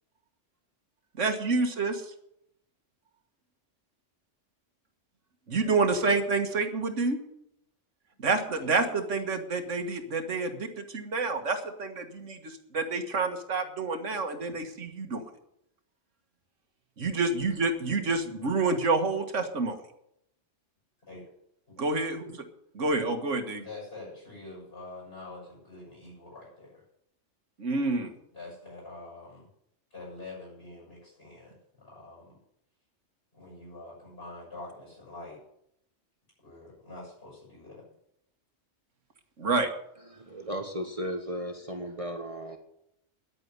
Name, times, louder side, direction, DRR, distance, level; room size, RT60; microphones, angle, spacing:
voice 1, 1.2-2.1 5.5-7.2 8.2-15.2 17.0-19.8 21.8-22.4 22.7-23.6 27.6-28.1 39.4-39.7, right 3 dB, 80° right, 6 dB, 1.9 m, -28 dB
voice 2, 23.6-26.8 28.3-29.5 29.9-32.4 33.3-35.4 36.4-37.9, left 2 dB, 50° left, -6 dB, 8.2 m, -45 dB
voice 3, 40.1-42.6, equal, 30° right, 4 dB, 1.3 m, -35 dB
10.5 x 8.7 x 9.6 m, 0.76 s
omnidirectional pair, 1.2 m